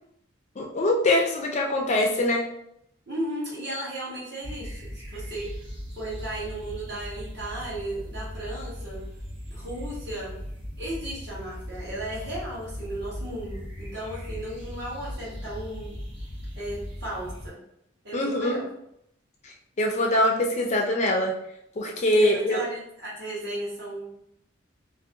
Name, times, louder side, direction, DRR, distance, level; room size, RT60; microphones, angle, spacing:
voice 1, 0.6-2.4 18.1-18.6 19.8-21.3 21.8-22.6, left 1 dB, 35° left, 1 dB, 0.4 m, -23 dB
voice 2, 3.1-5.5 6.0-9.0 9.5-10.4 10.8-16.0 16.6-17.6 18.0-18.7 22.1-24.2, right 1 dB, 55° right, -7 dB, 1.0 m, -35 dB
sound 1, 4.4-17.5, equal, 80° right, 1.1 m, -38 dB
2.5 x 2.1 x 2.6 m, 0.76 s
head